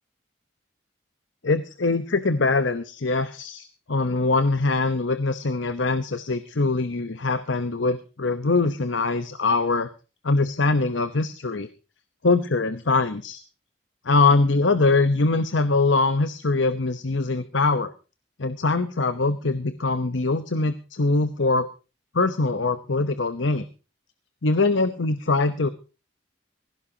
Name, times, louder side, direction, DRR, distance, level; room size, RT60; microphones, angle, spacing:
voice 1, 1.4-9.9 10.2-11.7 12.2-13.4 14.0-17.9 18.4-21.7 22.1-23.7 24.4-25.7, left 3 dB, 80° left, 11 dB, 1.0 m, -23 dB
20.0 x 16.5 x 2.8 m, 0.33 s
head